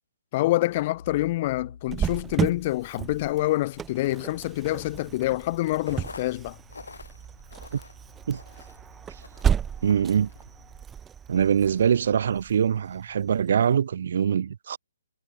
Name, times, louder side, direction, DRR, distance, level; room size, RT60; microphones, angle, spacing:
voice 1, 0.3-6.6, left 17 dB, 30° left, 3.7 m, -26 dB
sound 1, 0.7-3.5, left 7 dB, 60° left, 6.6 m, -47 dB
Cricket, 1.9-13.3, right 8 dB, 10° right, 2.0 m, -33 dB
sound 2, 5.8-10.8, left 4 dB, 85° left, 6.4 m, -48 dB
voice 2, 9.8-10.3 11.3-14.8, right 8 dB, 50° right, 0.8 m, -23 dB
hypercardioid pair, 165°, 0 cm